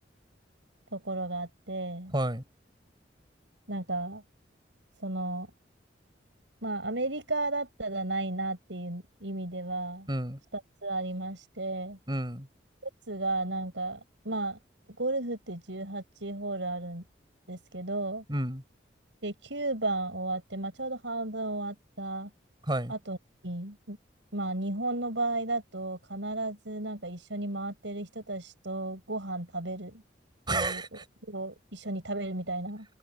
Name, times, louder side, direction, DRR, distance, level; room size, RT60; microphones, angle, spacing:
voice 1, 0.9-2.1 3.7-4.2 5.0-5.5 6.6-10.1 10.5-12.0 13.1-14.0 14.2-14.6 15.0-17.0 17.5-18.2 19.2-22.3 22.9-23.2 23.4-24.0 24.3-30.0 30.5-32.9, right 2 dB, 85° right, 5.9 m, -34 dB
voice 2, 2.1-2.4 10.1-10.4 12.1-12.5 18.3-18.6 22.7-22.9 30.5-30.9, right 1 dB, 25° right, 6.8 m, -30 dB
head